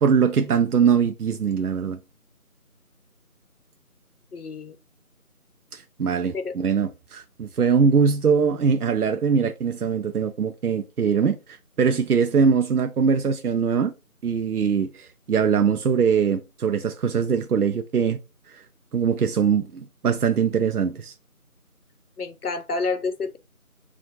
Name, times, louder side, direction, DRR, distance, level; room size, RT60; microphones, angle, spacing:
voice 1, 0.0-2.0 5.7-11.4 11.8-13.9 14.2-18.2 18.5-18.6 18.9-21.1, right 6 dB, 80° right, 0.5 m, -22 dB
voice 2, 4.3-4.7 6.3-6.6 22.2-23.4, left 4 dB, 80° left, 0.7 m, -29 dB
2.4 x 2.4 x 4.0 m
figure-of-eight pair, 175°, 44 cm